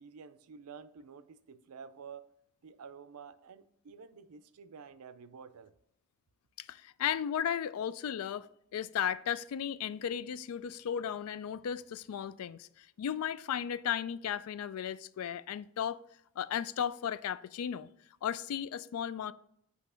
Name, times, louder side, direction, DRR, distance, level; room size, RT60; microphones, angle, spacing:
voice 1, 0.0-2.3 2.6-5.7, right 6 dB, 85° right, 0.5 m, -50 dB
voice 2, 6.6-8.5 8.7-16.0 16.4-17.9 18.2-19.3, left 9 dB, 75° left, 0.3 m, -35 dB
8.2 x 2.8 x 5.6 m
head